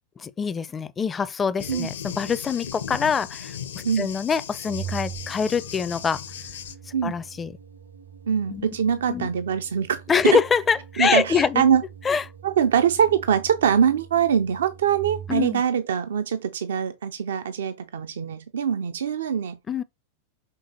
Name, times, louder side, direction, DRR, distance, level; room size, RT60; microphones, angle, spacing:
voice 1, 0.2-3.5 4.0-6.2 7.0-7.6 8.5-8.6 9.1-9.3 10.1-11.6 12.0-12.2 15.3-15.6 19.7-19.8, left 6 dB, 20° left, 0.5 m, -24 dB
Thunder, 1.6-6.8, left 8 dB, 65° left, 0.8 m, -37 dB
Organ, 4.6-15.6, right 9 dB, 80° right, 1.7 m, -42 dB
voice 2, 8.3-10.0 11.0-11.8 12.4-19.6, right 8 dB, 65° right, 0.5 m, -23 dB
6.7 x 3.8 x 4.0 m
figure-of-eight pair, 90°, 0 cm